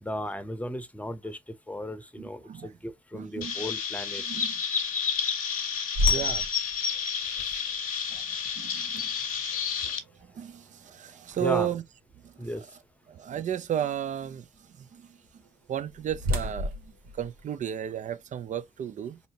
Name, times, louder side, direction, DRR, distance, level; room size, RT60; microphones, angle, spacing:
voice 1, 0.0-1.4 1.7-4.2 11.4-11.7 12.4-12.6, left 1 dB, 10° left, 0.8 m, -35 dB
voice 2, 2.2-2.7 3.1-3.5 4.2-4.5 6.1-6.5 7.2-7.6 8.1-8.2 8.6-9.1 9.8-9.9 10.4-11.8 12.2-12.7 13.1-14.5 14.8-15.1 15.7-19.2, right 10 dB, 45° right, 0.6 m, -34 dB
Chirp tweet, 3.4-10.0, left 7 dB, 85° left, 0.6 m, -30 dB
sound 1, 5.9-11.9 12.4-12.5 13.1-13.4 15.4-18.1, left 1 dB, 65° right, 1.0 m, -34 dB
4.2 x 2.8 x 2.8 m
hypercardioid pair, 45°, 17 cm